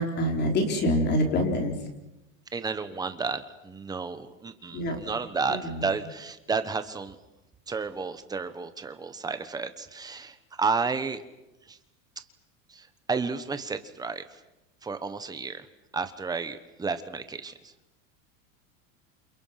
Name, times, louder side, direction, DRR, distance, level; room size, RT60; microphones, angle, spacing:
voice 1, 0.0-1.8 4.7-5.0 5.5-5.9, left 1 dB, 25° left, 3 dB, 4.1 m, -26 dB
voice 2, 2.5-7.2 7.7-11.2 11.7-11.8 12.2-12.3 12.7-14.4 14.8-15.7 15.9-17.7, right 4 dB, 10° right, 10 dB, 1.2 m, -32 dB
30.0 x 28.5 x 5.9 m, 0.94 s
supercardioid pair, 165°, 39 cm